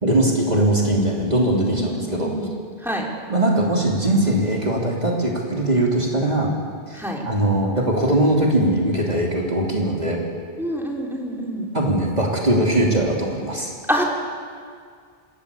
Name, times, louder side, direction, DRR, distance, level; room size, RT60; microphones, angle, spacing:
voice 1, 0.0-2.3 3.3-6.5 6.9-10.2 11.7-13.7, right 1 dB, 40° right, -1 dB, 3.3 m, -20 dB
voice 2, 1.6-2.5 2.8-3.1 6.9-7.2 10.6-11.7 13.9-14.0, equal, ahead, -2 dB, 4.0 m, -26 dB
26.5 x 20.5 x 8.4 m, 2.1 s
omnidirectional pair, 1.0 m